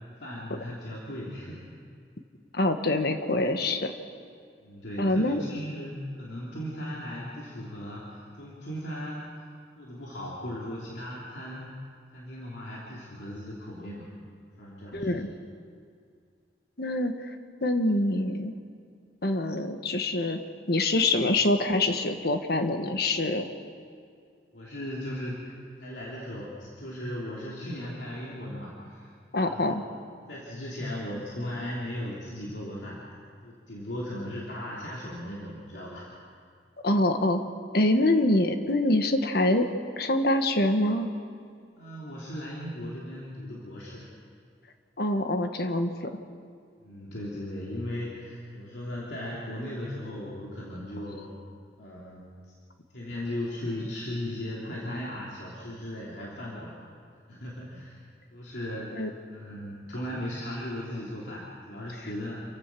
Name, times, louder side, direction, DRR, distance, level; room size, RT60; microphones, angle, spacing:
voice 1, 0.2-1.6 4.6-9.4 9.8-11.8 12.1-14.1 14.6-15.2 24.5-29.7 30.3-33.0 33.4-36.1 41.8-44.1 46.8-51.3 51.8-52.3 52.9-56.8 57.3-58.0 58.3-62.4, left 1 dB, 85° left, -5 dB, 3.2 m, -37 dB
voice 2, 2.5-3.9 5.0-5.4 14.9-15.3 16.8-17.3 17.6-18.5 19.2-20.4 20.7-23.5 29.3-29.8 36.8-37.4 37.7-39.7 40.0-41.1 45.0-46.1 58.9-59.1, left 1 dB, 65° left, 7 dB, 1.5 m, -25 dB
28.5 x 15.0 x 6.1 m, 2.2 s
head